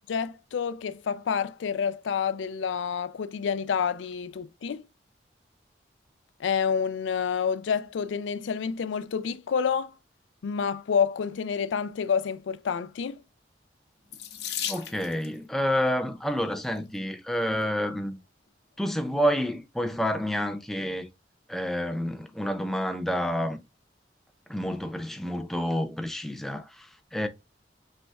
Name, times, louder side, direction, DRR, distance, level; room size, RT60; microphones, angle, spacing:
voice 1, 0.1-4.8 6.4-9.9 10.4-13.2, left 6 dB, 85° left, 0.4 m, -28 dB
Water tap faucet / Sink (filling or washing), 14.1-15.4 16.4-16.8 17.5-17.6 17.9-18.0, left 9 dB, 60° left, 0.7 m, -35 dB
voice 2, 14.7-18.2 18.8-21.1 21.5-23.6 24.5-27.3, equal, ahead, 0.3 m, -29 dB
5.1 x 3.3 x 2.3 m
head